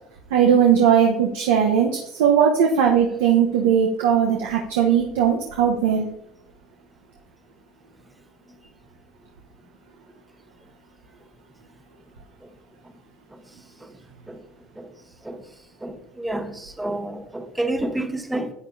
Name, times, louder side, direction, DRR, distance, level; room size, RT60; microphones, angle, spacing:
voice 1, 0.3-1.9 2.2-6.1, right 8 dB, 85° right, 1.0 m, -18 dB
voice 2, 15.8-18.5, right 1 dB, 10° right, 1.1 m, -29 dB
11.0 x 9.0 x 2.8 m
supercardioid pair, 95°, 0 cm